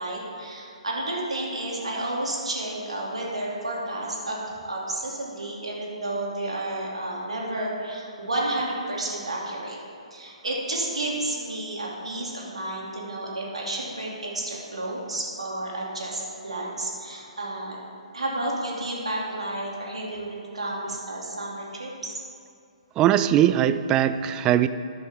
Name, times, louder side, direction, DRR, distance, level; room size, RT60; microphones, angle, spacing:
voice 1, 0.0-9.8 10.1-17.8 18.1-22.1, right 1 dB, 70° right, -3 dB, 3.0 m, -31 dB
voice 2, 23.0-24.7, right 11 dB, 20° right, 12 dB, 0.3 m, -20 dB
13.5 x 11.0 x 3.8 m, 2.3 s
figure-of-eight pair, 130°, 3 cm